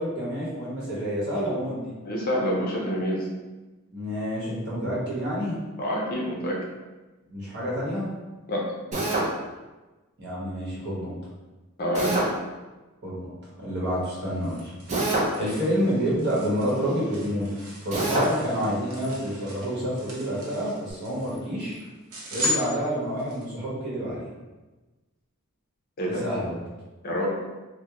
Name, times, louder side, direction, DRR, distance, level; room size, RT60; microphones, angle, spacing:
voice 1, 0.0-2.0 3.9-5.6 7.3-8.1 10.2-11.1 13.0-13.3 13.6-14.7 15.0-17.5 17.8-21.8 22.3-24.3 26.1-26.6, equal, 50° right, -7 dB, 1.1 m, -28 dB
voice 2, 2.0-3.3 5.8-6.6 8.5-8.6 11.8-12.1 26.0-26.2 27.0-27.3, equal, 40° left, -3 dB, 0.6 m, -27 dB
Drill, 8.9-9.3 11.9-12.3 14.9-15.3 17.9-18.3, right 2 dB, 30° right, 0.5 m, -25 dB
sound 1, 13.9-23.4, left 1 dB, 85° right, 0.8 m, -37 dB
3.5 x 2.2 x 2.9 m, 1.2 s
head